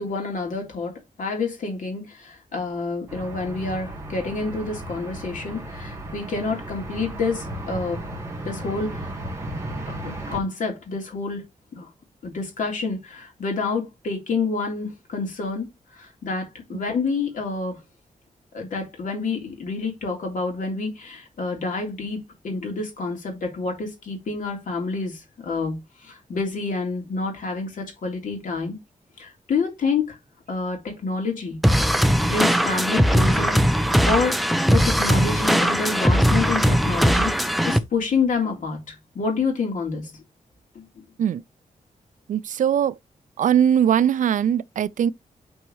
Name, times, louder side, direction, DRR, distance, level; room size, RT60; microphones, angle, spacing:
voice 1, 0.0-8.0 8.5-9.1 9.7-11.4 11.7-11.9 12.2-17.8 18.5-28.8 29.2-30.2 30.5-31.6 32.2-33.6 34.1-40.1 40.8-40.9, left 4 dB, 70° left, 3.5 m, -28 dB
sound 1, 3.1-10.4, right 1 dB, 20° right, 2.3 m, -35 dB
sound 2, 31.6-37.8, equal, ahead, 0.6 m, -19 dB
voice 2, 42.3-42.9 43.4-45.1, right 9 dB, 70° right, 0.4 m, -20 dB
8.9 x 4.6 x 3.1 m
wide cardioid pair, 160°, 14 cm